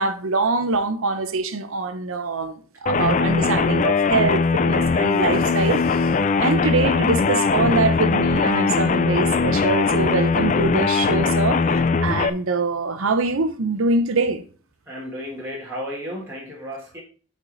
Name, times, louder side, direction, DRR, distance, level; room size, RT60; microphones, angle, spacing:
voice 1, 0.0-14.4, right 3 dB, 75° right, 0.8 m, -24 dB
sound 1, 2.9-12.3, left 4 dB, 35° left, 0.3 m, -20 dB
voice 2, 14.9-17.0, equal, 10° right, 1.6 m, -33 dB
8.6 x 4.8 x 4.0 m
head